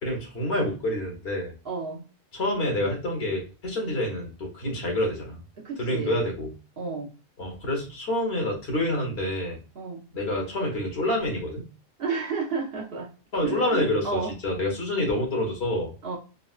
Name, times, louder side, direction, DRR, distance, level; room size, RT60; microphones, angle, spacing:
voice 1, 0.0-1.5 2.3-5.4 5.8-6.5 7.4-9.6 10.1-11.7 13.3-15.9, left 1 dB, 70° left, 1 dB, 1.4 m, -27 dB
voice 2, 1.6-2.1 5.6-6.2 6.8-7.1 9.7-10.0 12.0-13.1 13.4-14.3 16.0-16.2, right 4 dB, 60° right, -1 dB, 1.1 m, -31 dB
4.0 x 2.0 x 2.4 m, 0.34 s
omnidirectional pair, 1.1 m